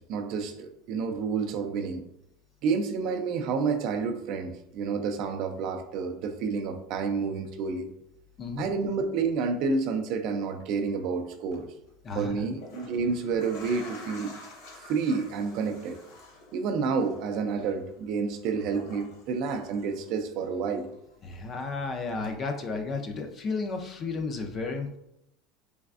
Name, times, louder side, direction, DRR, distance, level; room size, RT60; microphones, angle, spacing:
voice 1, 0.1-2.0 2.6-7.9 8.6-11.7 12.1-14.3 14.9-16.0 16.5-20.9, right 5 dB, 50° right, 6 dB, 0.4 m, -29 dB
voice 2, 8.4-8.7 12.0-12.4 21.2-25.0, left 3 dB, 25° left, 5 dB, 0.4 m, -33 dB
sound 1, 11.4-11.6 12.4-20.4 20.7-21.8 22.2-22.3, left 2 dB, 60° left, 1.0 m, -49 dB
3.4 x 3.2 x 2.4 m, 0.79 s
supercardioid pair, 160°, 0 cm